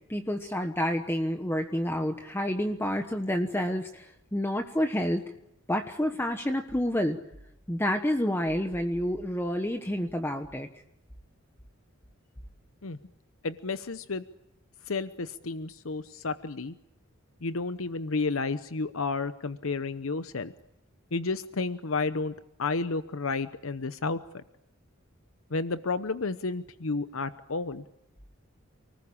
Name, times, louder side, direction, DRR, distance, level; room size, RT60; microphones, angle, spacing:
voice 1, 0.1-5.2 5.7-7.2 7.7-10.7, equal, 10° left, 5 dB, 1.2 m, -29 dB
voice 2, 13.4-14.2 14.9-16.7 17.4-20.5 21.1-22.3 22.6-24.4 25.5-27.8, left 3 dB, 85° left, 12 dB, 0.9 m, -31 dB
29.5 x 19.5 x 8.7 m, 0.81 s
head